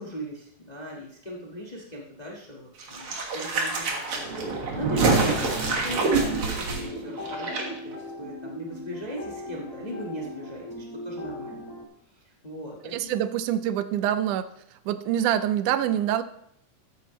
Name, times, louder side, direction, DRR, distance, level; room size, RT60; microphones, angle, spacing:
voice 1, 0.0-11.7 12.1-13.2, equal, 70° left, -2 dB, 0.4 m, -38 dB
sound 1, 2.8-7.6 7.9-8.0, right 4 dB, 50° right, 2.2 m, -26 dB
sound 2, 4.9-11.8, equal, 10° right, 1.2 m, -38 dB
voice 2, 12.9-14.5 14.9-16.2, right 11 dB, 85° right, 13 dB, 2.0 m, -25 dB
13.0 x 9.0 x 3.1 m, 0.71 s
omnidirectional pair, 3.6 m